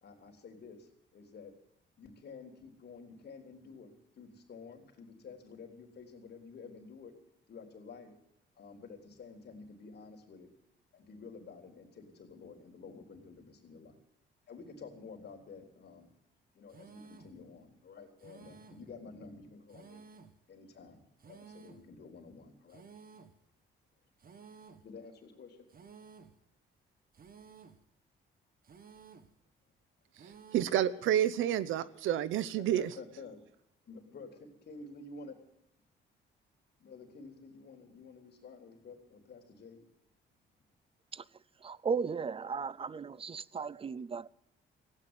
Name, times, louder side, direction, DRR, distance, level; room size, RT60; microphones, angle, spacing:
voice 1, 0.0-1.5 2.0-7.1 7.5-8.1 8.6-10.5 10.9-13.9 14.5-16.1 16.5-20.0 20.5-22.8 24.8-25.7 32.6-33.4 33.9-35.3 36.8-39.8, left 4 dB, 55° left, 3.6 m, -51 dB
sound 1, 16.7-17.4 18.2-18.9 19.7-20.4 21.2-21.9 22.7-23.4 24.2-24.9 25.7-26.4 27.1-27.9 28.6-29.4 30.1-30.9, right 5 dB, 45° right, 1.6 m, -54 dB
voice 2, 30.5-32.9, right 11 dB, 85° right, 0.9 m, -29 dB
voice 3, 41.6-44.3, right 5 dB, 30° right, 0.5 m, -36 dB
16.0 x 9.0 x 9.6 m
cardioid pair, 90°, 20 cm